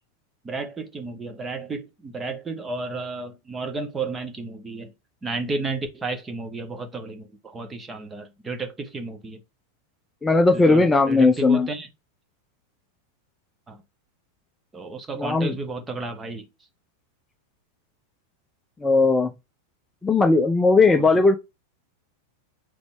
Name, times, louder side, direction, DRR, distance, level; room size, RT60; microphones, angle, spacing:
voice 1, 0.4-4.9 5.2-9.4 10.5-11.9 13.7-13.8 14.7-16.5 20.8-21.3, right 3 dB, 15° right, 1.0 m, -32 dB
voice 2, 10.2-11.7 15.2-15.5 18.8-19.3 20.0-21.4, left 3 dB, 10° left, 0.6 m, -18 dB
4.1 x 3.0 x 3.5 m
figure-of-eight pair, 90°, 0 cm